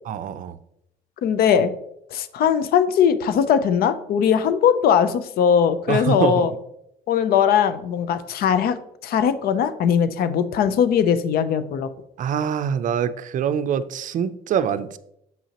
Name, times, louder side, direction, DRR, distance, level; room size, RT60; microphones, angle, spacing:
voice 1, 0.0-0.6 5.9-6.5 12.2-15.0, right 8 dB, 50° right, 13 dB, 0.5 m, -24 dB
voice 2, 1.2-1.7 2.1-6.5 7.1-8.8 9.0-11.9, left 8 dB, 65° left, 12 dB, 0.6 m, -20 dB
7.6 x 5.5 x 2.9 m, 0.77 s
cardioid pair, 110°, 17 cm